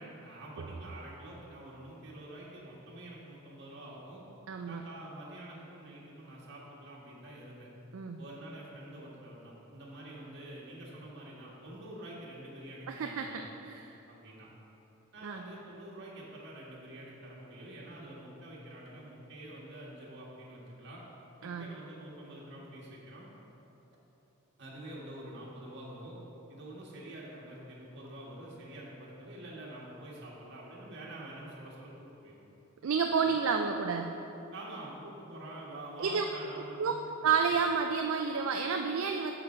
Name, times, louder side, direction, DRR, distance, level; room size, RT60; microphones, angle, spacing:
voice 1, 0.0-4.2 4.6-7.7 8.2-13.5 14.1-14.5 15.1-21.0 21.4-23.3 24.6-26.2 26.5-32.3 33.2-33.4 34.5-37.0, right 1 dB, 55° right, -5 dB, 1.8 m, -47 dB
voice 2, 4.5-4.8 7.9-8.2 12.9-13.9 15.2-15.4 21.4-21.7 32.8-34.2 36.0-36.2 36.8-39.3, right 5 dB, 75° right, 4 dB, 0.4 m, -30 dB
7.5 x 6.9 x 4.5 m, 3.0 s
head